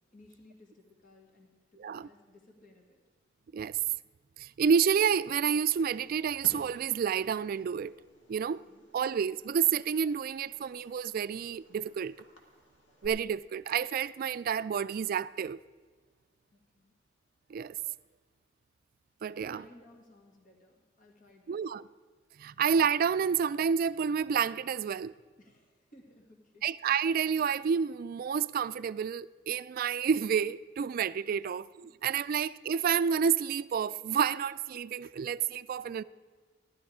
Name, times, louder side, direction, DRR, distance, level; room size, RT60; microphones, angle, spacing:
voice 1, 0.1-3.0 8.4-8.8 16.5-16.9 19.4-21.8 22.5-22.6 25.4-26.6 31.4-31.5 31.8-32.0, left 1 dB, 45° left, 1.8 m, -58 dB
voice 2, 4.4-7.9 8.3-8.6 8.9-12.1 13.0-15.6 17.5-17.8 19.2-19.6 21.5-21.8 22.4-25.1 26.6-36.0, right 7 dB, 50° right, 0.3 m, -29 dB
Fireworks, 5.1-13.1, equal, 80° left, 2.1 m, -58 dB
15.5 x 11.5 x 4.9 m
head